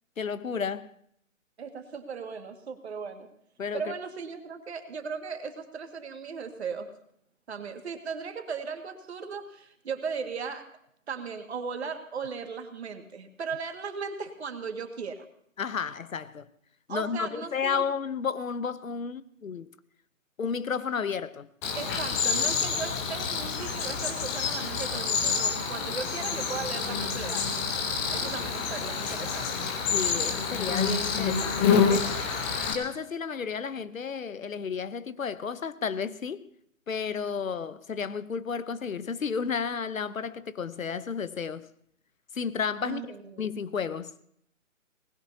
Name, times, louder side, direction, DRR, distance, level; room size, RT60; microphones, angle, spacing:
voice 1, 0.2-0.9 3.6-3.9 15.6-16.5 16.9-19.7 20.4-21.5 29.9-32.1 32.7-36.4 36.9-41.7 42.3-43.0 43.4-44.1, left 6 dB, 75° left, 0.9 m, -32 dB
voice 2, 1.6-3.3 3.7-6.9 7.5-10.7 11.1-15.3 16.9-17.8 21.8-27.5 28.1-29.5 42.8-43.4, right 5 dB, 55° right, 2.0 m, -37 dB
Cricket, 21.6-32.7, left 6 dB, 10° left, 0.8 m, -28 dB
21.5 x 19.5 x 2.8 m
figure-of-eight pair, 145°, 40 cm